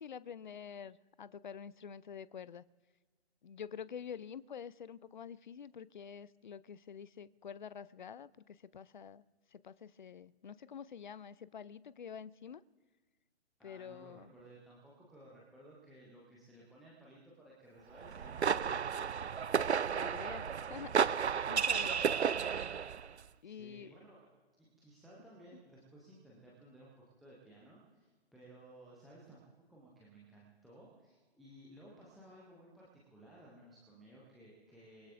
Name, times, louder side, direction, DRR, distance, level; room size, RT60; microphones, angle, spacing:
voice 1, 0.0-2.7 3.4-9.2 9.5-12.6 13.6-14.3 19.9-21.0 21.5-22.1 23.4-23.9, left 7 dB, 45° left, 19 dB, 0.5 m, -48 dB
voice 2, 13.6-18.7 23.4-24.3 24.6-35.1, right 1 dB, ahead, -6 dB, 0.5 m, -57 dB
sound 1, 18.0-23.1, right 7 dB, 80° right, 0.6 m, -32 dB
25.0 x 21.0 x 2.5 m, 1.4 s
figure-of-eight pair, 135°, 33 cm